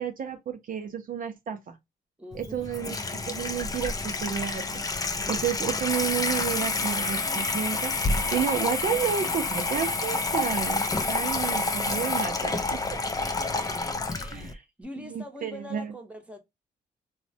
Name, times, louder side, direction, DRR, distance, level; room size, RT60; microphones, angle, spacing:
voice 1, 0.0-1.8 2.3-3.0 3.2-4.8 5.3-10.8 11.1-12.8 14.3-14.5 15.0-15.9, right 8 dB, 55° right, 0.5 m, -31 dB
voice 2, 2.2-2.7 11.1-11.3 13.0-13.3 14.1-16.4, left 1 dB, 5° right, 0.8 m, -43 dB
Water tap faucet / Sink (filling or washing), 2.3-14.5, left 3 dB, 20° left, 0.4 m, -29 dB
3.1 x 2.1 x 2.6 m
cardioid pair, 95°, 17 cm